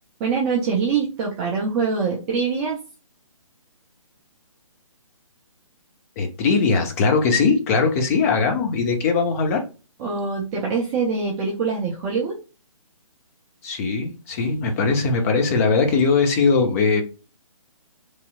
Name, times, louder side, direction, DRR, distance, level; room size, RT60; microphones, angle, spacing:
voice 1, 0.2-2.8 10.0-12.4, right 5 dB, 10° right, -3 dB, 0.4 m, -24 dB
voice 2, 6.2-9.7 13.6-17.0, left 4 dB, 25° left, 4 dB, 0.7 m, -20 dB
3.2 x 2.8 x 2.2 m, 0.30 s
figure-of-eight pair, 140°, 18 cm